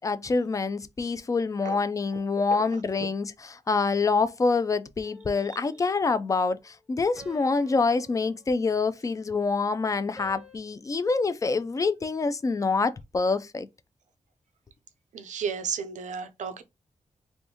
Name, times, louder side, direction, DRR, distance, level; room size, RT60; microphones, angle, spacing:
voice 1, 0.0-3.3 3.7-13.7, left 4 dB, 25° left, 0.3 m, -26 dB
sound 1, 5.0-6.0 7.2-9.1 10.2-10.6, left 1 dB, ahead, 0.8 m, -50 dB
voice 2, 15.1-16.6, right 6 dB, 85° right, 0.6 m, -33 dB
3.4 x 2.6 x 2.8 m
wide cardioid pair, 130°, 12 cm